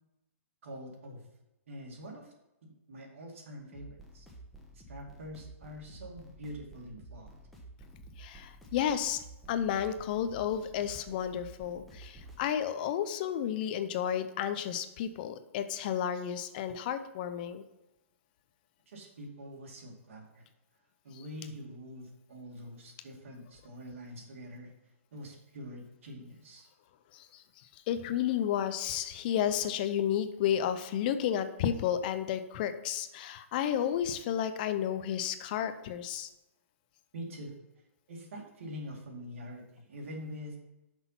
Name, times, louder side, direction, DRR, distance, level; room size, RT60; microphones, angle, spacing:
voice 1, 0.6-1.2 1.7-2.3 2.6-4.3 4.9-7.3 18.9-20.5 21.0-24.7 25.1-26.7 37.1-37.5 38.1-40.6, equal, 65° right, 0 dB, 2.3 m, -45 dB
sound 1, 3.7-12.4, right 2 dB, ahead, 1.1 m, -51 dB
voice 2, 8.2-9.2 9.5-17.6 21.1-21.2 27.1-27.4 27.9-36.3, left 9 dB, 40° left, 11 dB, 0.5 m, -32 dB
6.1 x 5.4 x 5.7 m, 0.95 s
hypercardioid pair, 150°, 8 cm